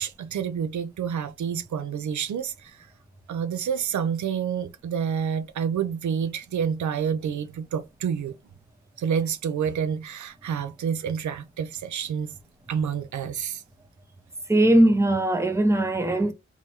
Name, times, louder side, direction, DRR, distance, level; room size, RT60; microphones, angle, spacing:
voice 1, 0.0-2.5 3.3-8.3 9.0-12.3 12.7-13.6, right 7 dB, 80° right, 0.6 m, -28 dB
voice 2, 14.5-16.3, right 1 dB, 10° right, 0.8 m, -20 dB
3.6 x 3.1 x 2.7 m
cardioid pair, 85°, 29 cm